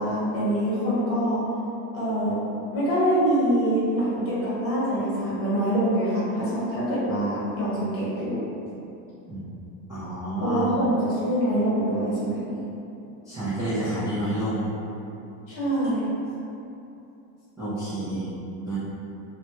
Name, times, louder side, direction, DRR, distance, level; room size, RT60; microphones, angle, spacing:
voice 1, 0.0-1.4 1.9-2.4 2.7-8.5 10.4-12.6 15.5-16.1, right 1 dB, 40° left, -9 dB, 1.0 m, -25 dB
voice 2, 9.9-10.7 13.3-14.8 17.6-18.3 18.6-18.8, right 1 dB, 10° right, -15 dB, 0.4 m, -29 dB
2.1 x 2.1 x 2.8 m, 2.8 s
cardioid pair, 140°, 36 cm